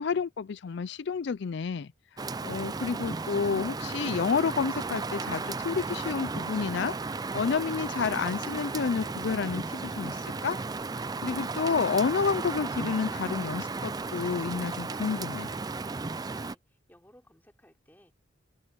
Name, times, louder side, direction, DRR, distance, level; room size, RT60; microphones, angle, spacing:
voice 1, 0.0-10.6 11.2-15.5, left 5 dB, 60° left, 0.4 m, -30 dB
Rain, 2.2-16.5, right 3 dB, 20° right, 0.4 m, -34 dB
voice 2, 16.3-18.1, equal, 10° left, 3.5 m, -59 dB
head